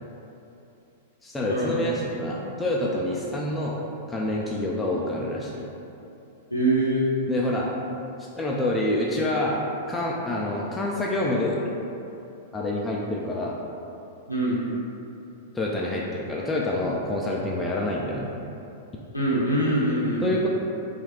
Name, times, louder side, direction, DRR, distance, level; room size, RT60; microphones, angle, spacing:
voice 1, 1.2-3.8 4.1-5.6 7.3-7.7 8.4-9.6 9.9-11.6 12.5-13.6 15.5-18.3 20.2-20.5, left 1 dB, 10° left, -4 dB, 0.3 m, -27 dB
voice 2, 6.5-7.0 14.3-14.6 19.1-20.5, right 1 dB, 85° left, -7 dB, 0.6 m, -24 dB
4.4 x 2.3 x 2.7 m, 2.8 s
figure-of-eight pair, 100°, 0 cm